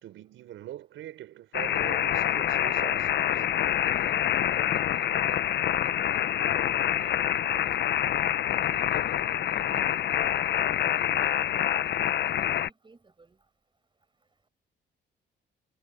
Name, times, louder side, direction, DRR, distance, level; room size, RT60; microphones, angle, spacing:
voice 1, 0.0-3.4, right 13 dB, 80° right, 5.4 m, -43 dB
sound 1, 1.5-12.7, left 11 dB, 60° left, 0.7 m, -26 dB
voice 2, 5.2-6.4 6.7-13.4, right 3 dB, 25° right, 7.3 m, -59 dB
cardioid pair, 90°, 20 cm